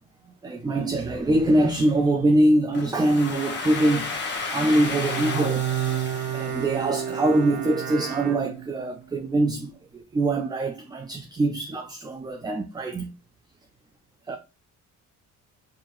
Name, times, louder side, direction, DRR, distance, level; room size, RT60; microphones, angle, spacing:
voice 1, 0.4-4.1 4.5-13.1 14.3-14.4, right 1 dB, 15° right, 0.3 m, -24 dB
Domestic sounds home sounds, 2.7-7.5, left 4 dB, 35° left, 1.0 m, -33 dB
Bowed string instrument, 4.6-9.0, right 10 dB, 65° right, 0.8 m, -30 dB
4.5 x 2.6 x 2.9 m
cardioid pair, 125°, 33 cm